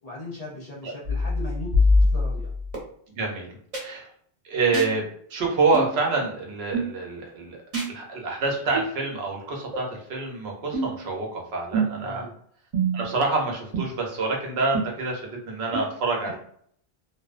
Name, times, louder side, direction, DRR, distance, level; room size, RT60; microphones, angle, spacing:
voice 1, 0.0-2.5 12.0-12.3 16.2-16.3, left 1 dB, 45° left, -4 dB, 0.6 m, -38 dB
sound 1, 1.0-2.8 3.7-3.8 4.7-4.9 5.7-5.9 6.7-6.9 7.7-7.9 8.7-8.9 9.7-9.8 10.7-11.0 11.7-12.1 12.7-13.1 13.7-13.8 14.7-14.8 15.7-15.8, left 1 dB, 40° right, 0.7 m, -24 dB
voice 2, 3.1-3.5 3.8-4.1 4.4-7.6 7.9-12.3 12.9-16.4, right 3 dB, 80° right, 0 dB, 0.9 m, -27 dB
2.5 x 2.0 x 2.4 m, 0.63 s
omnidirectional pair, 1.1 m